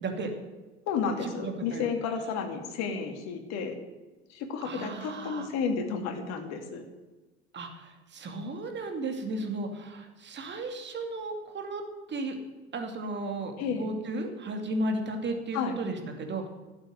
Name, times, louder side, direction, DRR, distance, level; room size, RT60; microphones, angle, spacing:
voice 1, 0.0-0.3 1.2-1.9 4.6-5.5 7.5-11.8 12.1-12.3 12.7-16.5, right 2 dB, 35° right, 5 dB, 2.7 m, -34 dB
voice 2, 0.9-3.8 4.3-6.8 13.6-13.9 15.5-15.8, left 5 dB, 55° left, 5 dB, 2.4 m, -32 dB
12.5 x 8.1 x 9.3 m, 1.2 s
figure-of-eight pair, 70°, 33 cm